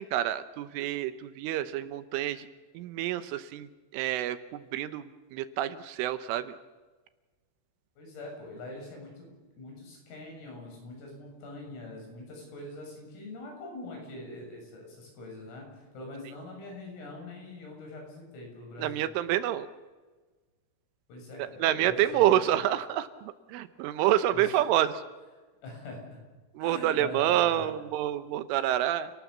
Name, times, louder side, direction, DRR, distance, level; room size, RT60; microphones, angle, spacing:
voice 1, 0.0-2.5 2.7-5.1 5.3-6.5 18.8-19.7 21.6-24.9 26.5-29.1, right 12 dB, 80° right, 12 dB, 3.3 m, -28 dB
voice 2, 8.0-9.3 9.6-19.1 21.1-22.4 23.9-24.0 24.3-24.5 25.6-26.2 26.6-27.7, left 2 dB, 80° left, 1 dB, 9.9 m, -43 dB
30.0 x 18.5 x 7.2 m, 1.3 s
omnidirectional pair, 5.9 m